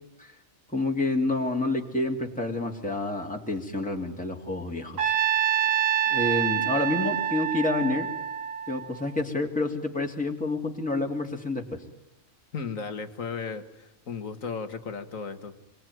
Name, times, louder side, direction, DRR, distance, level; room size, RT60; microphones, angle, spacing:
voice 1, 0.7-5.2 5.5-5.8 6.1-8.1 8.7-11.8, left 2 dB, 5° left, 1 dB, 2.6 m, -29 dB
Trumpet, 5.0-9.2, right 10 dB, 75° right, 1.8 m, -26 dB
voice 2, 12.5-15.5, left 5 dB, 85° left, 9 dB, 2.2 m, -35 dB
28.0 x 22.5 x 9.3 m, 0.86 s
omnidirectional pair, 1.4 m